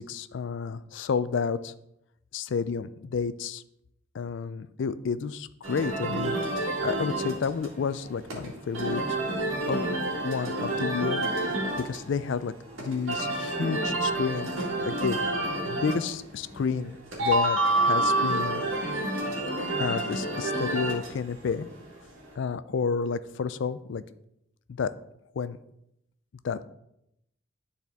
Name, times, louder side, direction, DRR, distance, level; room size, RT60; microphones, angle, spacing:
voice 1, 0.0-1.7 2.3-3.6 4.1-9.2 9.7-9.8 10.2-11.2 11.8-12.5 12.8-14.5 14.8-15.2 15.7-18.6 19.7-21.7 22.4-24.0 24.7-24.9 25.4-25.6 26.4-26.6, left 5 dB, 65° left, 14 dB, 0.4 m, -30 dB
sound 1, 5.6-22.3, right 1 dB, 85° right, 2.0 m, -29 dB
10.5 x 4.2 x 3.5 m, 0.79 s
head